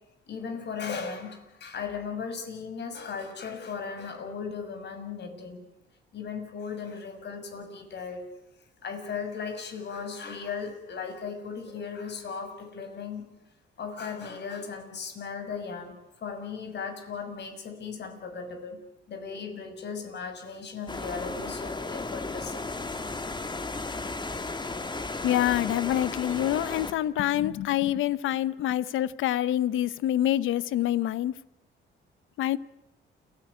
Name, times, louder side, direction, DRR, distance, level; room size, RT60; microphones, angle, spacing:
voice 1, 0.3-5.6 6.1-8.2 8.8-13.2 13.8-18.8 19.1-22.7, left 5 dB, 60° left, 6.4 m, -37 dB
sound 1, 20.9-26.9, left 3 dB, 20° left, 2.1 m, -34 dB
voice 2, 25.2-31.3 32.4-32.6, left 12 dB, 80° left, 1.0 m, -26 dB
29.0 x 17.5 x 9.6 m
cardioid pair, 90°, 20 cm